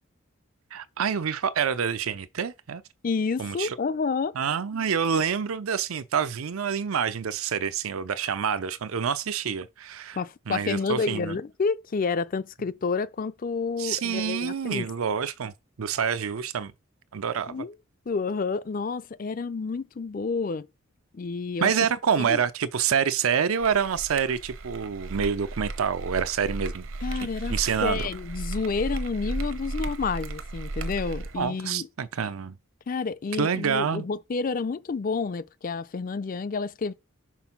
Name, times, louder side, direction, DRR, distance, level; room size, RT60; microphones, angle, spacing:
voice 1, 0.7-2.8 3.4-3.8 4.4-10.2 10.5-11.4 13.8-15.5 15.8-16.7 17.1-17.6 21.6-26.9 27.5-28.0 31.4-32.5 33.4-34.1, right 7 dB, 90° right, 0.5 m, -27 dB
voice 2, 3.0-4.3 10.2-14.9 17.5-17.7 18.1-20.7 21.1-21.7 22.2-22.4 27.0-31.9 32.9-36.9, left 4 dB, 40° left, 0.4 m, -29 dB
sound 1, 23.6-31.4, right 2 dB, 70° right, 0.9 m, -35 dB
6.0 x 3.7 x 5.8 m
head